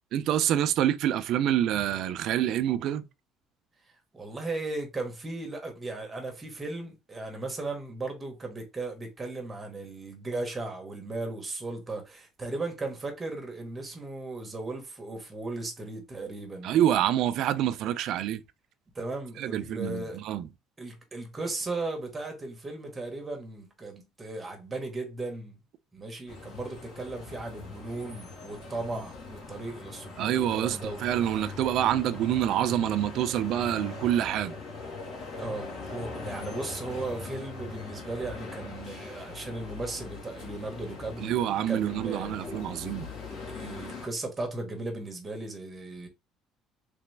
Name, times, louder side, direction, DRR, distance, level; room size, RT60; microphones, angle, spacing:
voice 1, 0.1-3.0 16.6-18.4 19.4-20.5 30.2-34.5 41.2-43.1, right 11 dB, 60° right, 0.4 m, -27 dB
voice 2, 4.1-16.7 18.9-20.2 20.8-25.6 25.9-31.3 35.4-41.4 41.7-42.4 43.5-46.1, right 2 dB, 20° right, 1.1 m, -36 dB
sound 1, 26.3-44.1, left 4 dB, 60° left, 1.8 m, -41 dB
3.4 x 3.0 x 3.3 m
cardioid pair, 145°, 0 cm